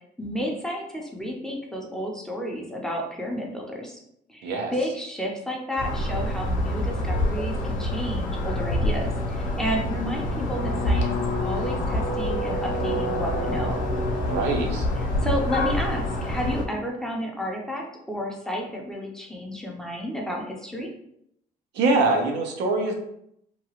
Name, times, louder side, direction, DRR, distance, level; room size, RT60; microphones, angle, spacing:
voice 1, 0.2-4.0 4.3-11.1 11.4-13.8 15.0-20.9, equal, 5° left, -1 dB, 0.6 m, -31 dB
voice 2, 4.4-4.7 14.2-14.9 21.7-22.9, right 3 dB, 90° right, 2 dB, 0.6 m, -23 dB
sound 1, 5.8-16.6, left 1 dB, 50° left, 0.6 m, -26 dB
2.8 x 2.3 x 2.8 m, 0.73 s
cardioid pair, 110°, 17 cm